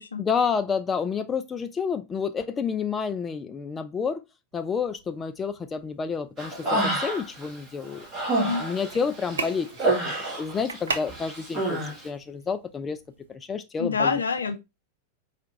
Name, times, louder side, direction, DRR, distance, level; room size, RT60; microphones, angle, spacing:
voice 1, 0.2-4.2 4.5-8.0 8.6-13.0 13.3-14.2, left 6 dB, 20° left, 0.3 m, -29 dB
sound 1, 4.5-13.3, right 4 dB, 70° right, 0.5 m, -40 dB
Human voice, 6.4-7.5 7.8-10.8 11.1-11.9, right 2 dB, 25° right, 1.4 m, -28 dB
voice 2, 13.8-14.6, left 4 dB, 75° left, 0.5 m, -26 dB
4.5 x 2.4 x 2.8 m
figure-of-eight pair, 90°, 0 cm